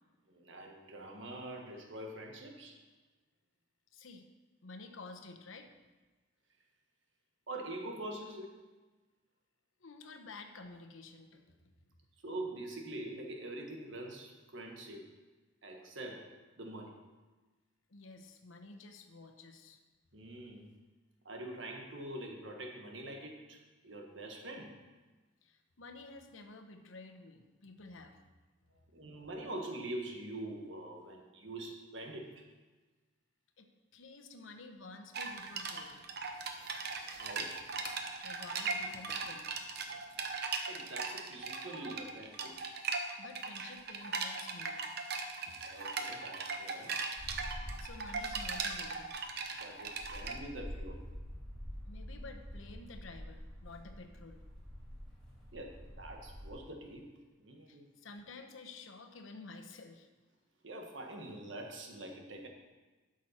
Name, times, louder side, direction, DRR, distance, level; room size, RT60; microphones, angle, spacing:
voice 1, 0.3-2.8 7.5-8.5 12.2-15.1 15.6-17.0 20.1-20.7 21.2-24.8 28.9-32.5 37.2-37.6 40.7-42.5 45.6-46.9 49.6-51.0 55.5-55.7 56.0-57.1 57.4-57.9 60.6-62.5, right 1 dB, 70° right, 2 dB, 1.5 m, -44 dB
voice 2, 3.9-4.3 4.6-5.7 9.8-11.5 17.9-19.8 25.4-28.2 33.6-33.7 33.9-36.0 38.2-39.5 43.1-44.8 45.5-45.6 47.5-49.1 51.9-54.4 57.7-60.1, left 3 dB, 90° left, 6 dB, 1.0 m, -51 dB
sound 1, 35.1-50.4, right 4 dB, 55° right, 0.8 m, -39 dB
sound 2, 35.2-40.4, left 4 dB, 55° left, 1.0 m, -58 dB
sound 3, 47.2-56.5, equal, 5° left, 3.4 m, -47 dB
12.0 x 6.4 x 4.3 m, 1.2 s
head